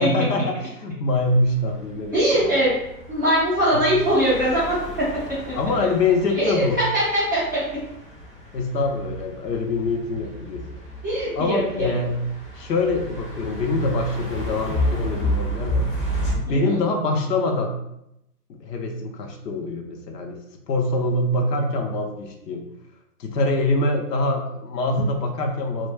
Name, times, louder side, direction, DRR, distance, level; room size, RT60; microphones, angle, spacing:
voice 1, 0.0-2.6 3.7-3.9 5.6-6.8 8.5-10.6 11.4-12.2 12.5-15.9 16.4-17.8 18.5-20.4 20.7-22.7 23.2-25.9, left 2 dB, 85° left, 3 dB, 0.7 m, -24 dB
sound 1, 1.1-16.4, equal, 35° left, 0.6 m, -32 dB
voice 2, 2.1-2.8 3.1-4.7 6.4-7.6 11.0-11.9 16.5-16.7, equal, 15° right, -12 dB, 0.4 m, -21 dB
2.2 x 2.1 x 3.2 m, 0.82 s
hypercardioid pair, 150°, 47 cm